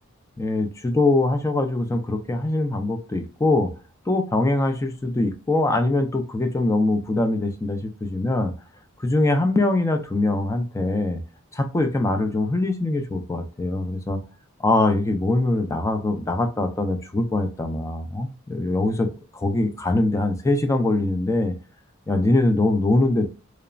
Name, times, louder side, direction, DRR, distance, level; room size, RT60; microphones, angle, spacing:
voice 1, 0.4-3.7 4.1-8.5 9.0-11.2 11.5-14.2 14.6-21.5 22.1-23.3, left 2 dB, 15° left, 6 dB, 0.3 m, -23 dB
3.0 x 2.0 x 2.4 m, 0.34 s
head